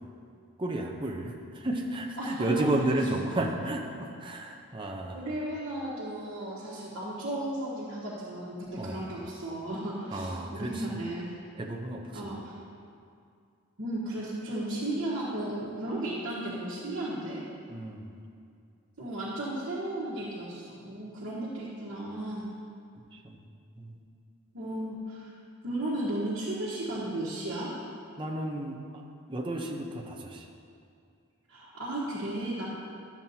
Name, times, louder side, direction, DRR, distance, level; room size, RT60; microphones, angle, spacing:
voice 1, 0.6-5.2 8.7-9.0 10.1-11.0 11.6-12.3 17.7-18.1 23.1-23.4 23.8-24.0 28.2-29.0 29.3-30.5, right 1 dB, 25° right, 1 dB, 0.6 m, -32 dB
voice 2, 2.2-2.6 3.0-3.1 5.1-11.4 12.1-12.5 13.8-17.4 19.0-22.5 24.5-25.3 25.6-27.7 31.5-32.7, right 1 dB, 60° right, -9 dB, 1.3 m, -34 dB
12.0 x 7.2 x 2.8 m, 2.4 s
head